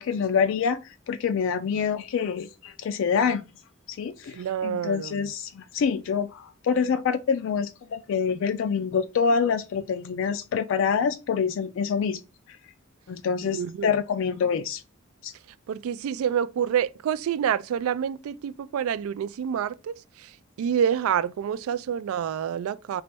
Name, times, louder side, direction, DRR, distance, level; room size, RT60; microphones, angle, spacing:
voice 1, 0.0-3.4 3.9-12.2 13.1-14.8 15.2-15.3, left 6 dB, 65° left, 0.3 m, -26 dB
voice 2, 4.3-5.3 13.5-13.9 15.7-23.0, right 8 dB, 85° right, 0.3 m, -28 dB
4.2 x 3.0 x 3.4 m
head